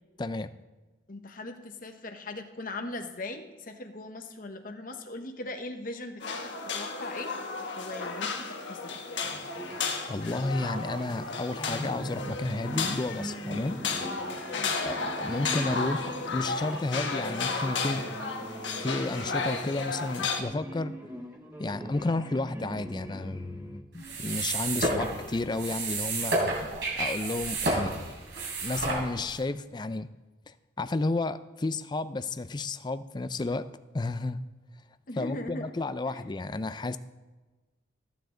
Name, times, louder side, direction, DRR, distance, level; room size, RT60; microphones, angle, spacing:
voice 1, 0.2-0.5 10.1-13.8 14.8-18.1 18.8-20.9 21.6-26.6 27.0-27.9 28.6-30.1 30.5-33.7 33.9-34.4 35.2-37.0, left 2 dB, 25° left, 13 dB, 0.4 m, -32 dB
voice 2, 1.1-7.3 7.7-9.0 14.5-14.8 35.1-36.2, left 2 dB, 45° left, 5 dB, 1.0 m, -40 dB
sound 1, 6.2-20.4, left 4 dB, 70° left, 1.2 m, -33 dB
sound 2, 9.2-23.8, right 1 dB, 10° right, 0.9 m, -41 dB
sound 3, 24.0-29.4, right 2 dB, 65° right, 3.5 m, -30 dB
14.5 x 9.1 x 3.8 m, 1.2 s
head